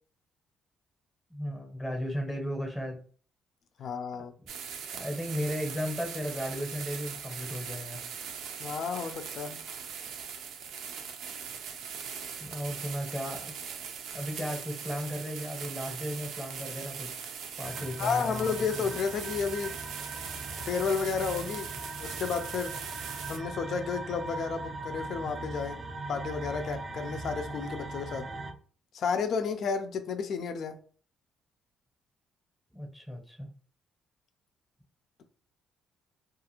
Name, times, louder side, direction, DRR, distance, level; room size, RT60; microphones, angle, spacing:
voice 1, 1.3-3.0 4.9-8.0 12.4-13.5 14.1-17.1 17.6-18.5 32.7-33.5, equal, ahead, 0.8 m, -35 dB
voice 2, 3.8-4.3 8.6-9.6 18.0-19.8 20.7-21.7 22.0-22.8 23.3-25.8 26.1-28.3 28.9-30.8, left 5 dB, 60° left, 0.4 m, -32 dB
sound 1, 4.5-23.4, right 7 dB, 80° right, 0.5 m, -40 dB
sound 2, 17.6-28.5, right 2 dB, 20° right, 0.4 m, -40 dB
2.5 x 2.4 x 2.9 m
cardioid pair, 110°, 0 cm